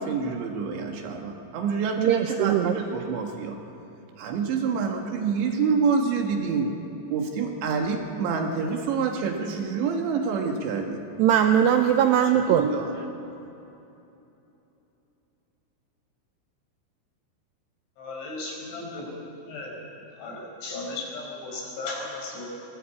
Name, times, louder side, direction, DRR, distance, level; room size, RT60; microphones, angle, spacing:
voice 1, 0.0-3.6 4.2-6.7 7.1-11.0 12.5-12.9, right 5 dB, 70° right, 2 dB, 3.5 m, -27 dB
voice 2, 2.0-2.7 11.2-12.7, right 9 dB, 85° right, 5 dB, 2.4 m, -20 dB
voice 3, 18.0-19.0 19.5-19.7 20.2-22.4, left 3 dB, 65° left, -1 dB, 7.1 m, -35 dB
24.0 x 20.0 x 8.4 m, 2.9 s
omnidirectional pair, 5.9 m